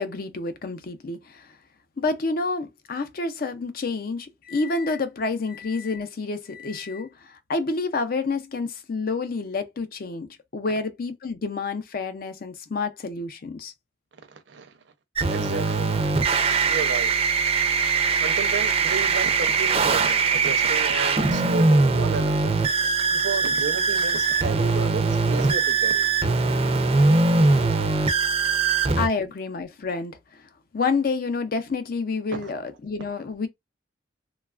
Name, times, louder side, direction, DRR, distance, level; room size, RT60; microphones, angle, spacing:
voice 1, 0.0-1.5 2.0-13.7 29.0-30.4 30.7-33.5, left 3 dB, 50° left, 0.5 m, -29 dB
voice 2, 14.2-14.7 15.3-17.1 18.2-26.1 28.4-28.6 32.3-32.5, right 5 dB, 75° right, 0.6 m, -33 dB
sound 1, 15.2-29.1, right 4 dB, 30° right, 0.4 m, -21 dB
3.1 x 2.3 x 2.3 m
head